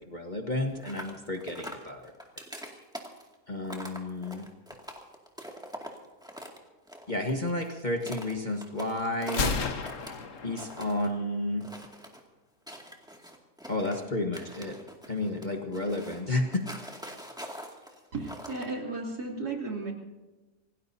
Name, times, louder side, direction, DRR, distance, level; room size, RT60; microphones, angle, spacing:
voice 1, 0.1-2.0 3.5-4.5 7.1-9.6 10.4-11.6 13.7-14.8 15.1-16.6, left 2 dB, 30° left, 2 dB, 1.4 m, -31 dB
sound 1, 0.7-6.6 6.9-10.2 10.5-11.1 11.6-12.2 12.7-14.0 14.3-18.7, equal, 5° right, 2.1 m, -43 dB
Gunshot gunfire, 9.3-11.2, left 4 dB, 55° left, 1.5 m, -32 dB
voice 2, 18.1-19.9, right 3 dB, 85° right, 0 dB, 3.4 m, -34 dB
26.5 x 18.0 x 2.7 m, 1.2 s
omnidirectional pair, 1.6 m